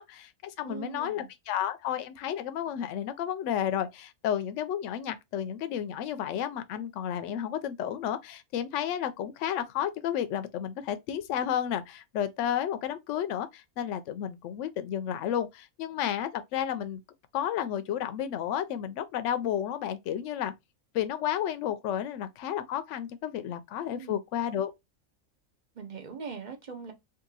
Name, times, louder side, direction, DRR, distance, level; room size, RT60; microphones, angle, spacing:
voice 1, 0.0-17.0 17.3-20.5 20.9-24.7, left 10 dB, 70° left, 0.9 m, -32 dB
voice 2, 0.6-1.3 24.0-24.2 25.8-26.9, right 6 dB, 45° right, 0.7 m, -41 dB
2.8 x 2.5 x 3.8 m
omnidirectional pair, 1.4 m